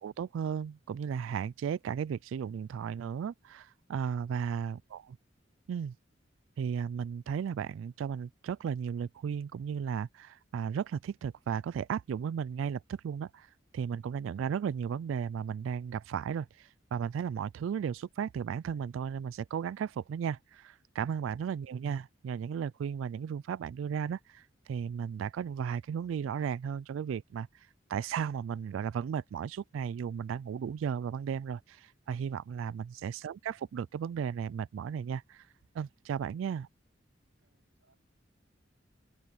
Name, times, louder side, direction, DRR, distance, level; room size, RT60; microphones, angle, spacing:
voice 1, 0.0-5.0 5.7-6.0 6.6-13.5 13.7-35.5 35.7-36.7, right 7 dB, 85° right, 0.3 m, -35 dB
voice 2, 37.4-38.0, right 1 dB, 70° right, 7.6 m, -76 dB
open air
head